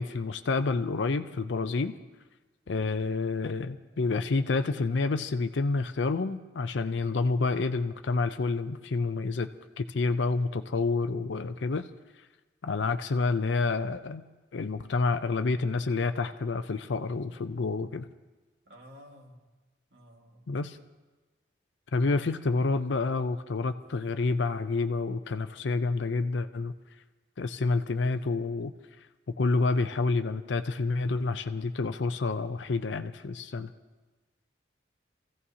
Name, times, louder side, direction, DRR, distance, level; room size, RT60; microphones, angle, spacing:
voice 1, 0.0-1.9 2.7-9.5 9.8-11.9 12.6-14.2 14.5-18.1 20.5-20.8 21.9-26.7 27.4-28.7 29.4-33.7, left 3 dB, 75° left, 9 dB, 0.5 m, -28 dB
voice 2, 18.7-19.4 19.9-20.5, equal, 70° right, 0 dB, 2.0 m, -53 dB
26.0 x 15.5 x 2.8 m, 1.2 s
head